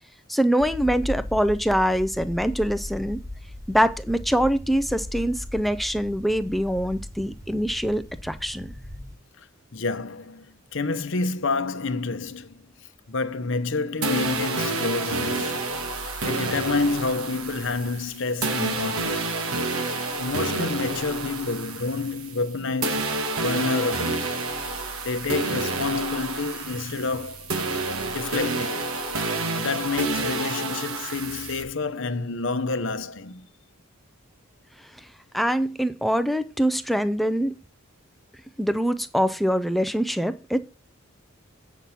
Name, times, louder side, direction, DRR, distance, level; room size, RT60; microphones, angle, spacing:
voice 1, 0.3-3.2 3.7-8.7 35.3-37.6 38.6-40.6, equal, ahead, 0.4 m, -24 dB
sound 1, 0.6-9.1, left 1 dB, 15° right, 1.3 m, -37 dB
voice 2, 9.7-12.6 13.1-15.6 16.1-19.4 20.2-24.4 25.0-27.7 28.1-28.9 29.5-33.5, left 3 dB, 60° left, 0.8 m, -28 dB
sound 2, 14.0-22.5 22.8-31.6, right 3 dB, 80° right, 1.6 m, -29 dB
8.5 x 5.9 x 5.8 m
head